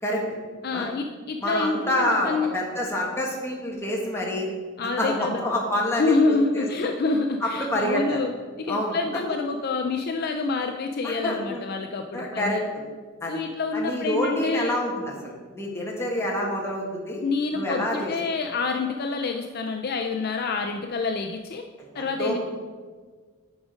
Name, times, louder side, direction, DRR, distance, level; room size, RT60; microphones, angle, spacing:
voice 1, 0.6-2.5 4.8-5.4 5.9-8.3 8.6-12.6 13.3-14.8 17.2-21.6 21.9-22.4, left 3 dB, 45° left, 4 dB, 0.4 m, -27 dB
voice 2, 1.4-4.5 5.0-7.0 7.4-8.2 8.7-9.0 11.0-11.6 12.1-12.6 13.2-13.4 13.7-17.2 17.5-18.1 21.8-22.4, left 1 dB, 10° left, -2 dB, 1.5 m, -27 dB
10.0 x 5.0 x 5.0 m, 1.5 s
head